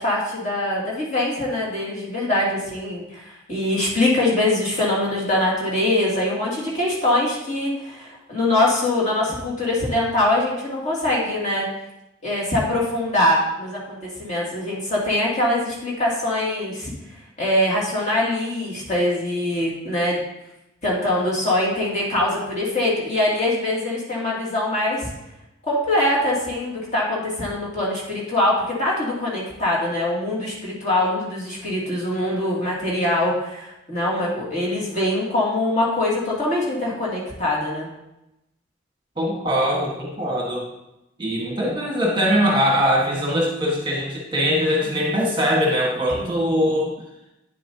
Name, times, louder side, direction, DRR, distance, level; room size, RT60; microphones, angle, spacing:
voice 1, 0.0-11.7 12.2-16.9 17.4-20.2 20.8-25.1 25.7-37.9 44.8-44.9 46.1-46.4, left 1 dB, 35° left, -6 dB, 2.5 m, -23 dB
voice 2, 39.2-40.6 41.2-46.9, equal, 25° right, -3 dB, 1.4 m, -21 dB
9.3 x 7.5 x 2.8 m, 0.90 s
head